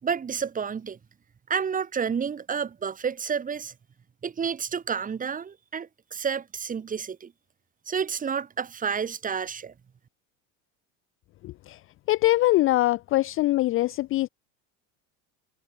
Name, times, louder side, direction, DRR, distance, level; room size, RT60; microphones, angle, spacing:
voice 1, 0.0-1.0 1.5-3.7 4.2-7.3 7.9-9.7, right 6 dB, 20° right, 1.9 m, -30 dB
voice 2, 11.4-11.8 12.1-14.3, left 17 dB, 35° left, 0.5 m, -23 dB
supercardioid pair, 135°, 40 cm